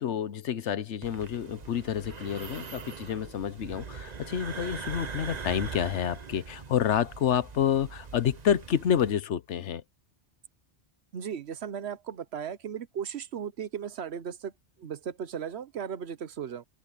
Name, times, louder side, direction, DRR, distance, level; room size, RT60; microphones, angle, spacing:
voice 1, 0.0-9.8, left 9 dB, 75° left, 1.1 m, -29 dB
sound 1, 1.0-9.1, right 5 dB, 40° right, 1.0 m, -42 dB
voice 2, 11.1-14.5 14.8-16.7, right 8 dB, 65° right, 1.1 m, -36 dB
omnidirectional pair, 1.2 m